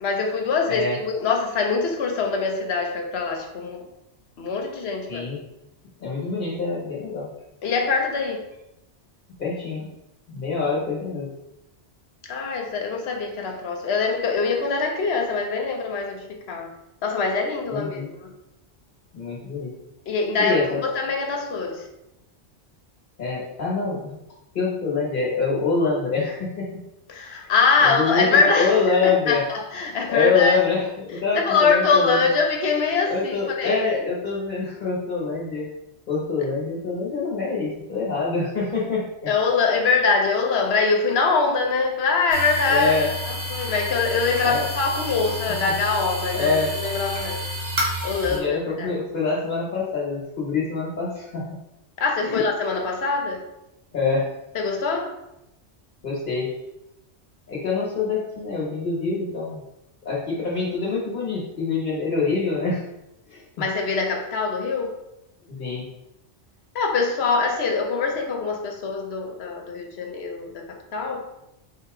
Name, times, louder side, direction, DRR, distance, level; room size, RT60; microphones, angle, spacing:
voice 1, 0.0-3.9 4.4-5.2 7.6-8.4 12.2-16.7 17.0-18.3 20.1-21.9 27.1-30.6 31.3-34.1 39.3-47.5 48.0-49.0 52.0-53.5 54.5-55.2 63.6-65.0 66.7-71.3, left 4 dB, 70° left, 2 dB, 0.9 m, -23 dB
voice 2, 5.1-5.4 6.0-7.3 9.4-9.9 10.3-11.3 17.7-18.1 19.1-19.7 20.4-20.8 23.2-24.2 24.5-26.7 27.4-27.5 27.8-28.3 28.6-29.4 30.1-32.2 33.1-35.7 36.1-39.1 42.7-43.1 44.4-44.6 46.3-46.7 48.3-51.6 52.2-52.4 53.9-54.3 56.0-56.5 57.5-59.6 60.0-62.8 63.3-63.4 65.5-65.9, left 4 dB, 50° left, -5 dB, 1.2 m, -25 dB
sound 1, 42.3-48.4, left 1 dB, 40° right, 0.9 m, -30 dB
3.5 x 2.8 x 4.7 m, 0.89 s
omnidirectional pair, 1.2 m